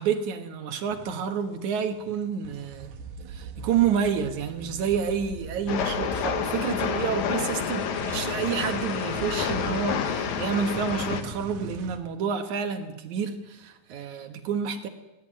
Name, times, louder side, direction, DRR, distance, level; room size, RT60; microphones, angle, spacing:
voice 1, 0.0-2.9 3.3-14.9, right 7 dB, 60° right, 6 dB, 2.6 m, -29 dB
sound 1, 0.9-1.6 1.9-12.0, right 4 dB, 80° right, 3.2 m, -40 dB
Train, 5.7-11.2, left 7 dB, 60° left, 2.4 m, -29 dB
18.0 x 16.5 x 9.0 m, 1.1 s
omnidirectional pair, 4.2 m